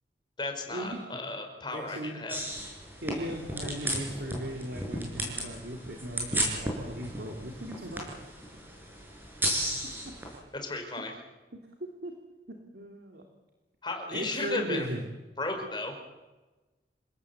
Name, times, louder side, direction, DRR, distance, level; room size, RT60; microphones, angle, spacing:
voice 1, 0.4-2.4 10.5-11.1 13.8-14.8 15.4-15.9, left 2 dB, 25° left, 4 dB, 5.0 m, -34 dB
voice 2, 1.7-2.2 3.0-8.1 9.8-10.1 11.5-12.2 12.5-13.3 14.1-15.0, right 1 dB, 65° right, 2 dB, 2.9 m, -38 dB
sound 1, 2.3-10.4, right 1 dB, 10° right, 6.5 m, -34 dB
28.0 x 17.0 x 8.1 m, 1.1 s
head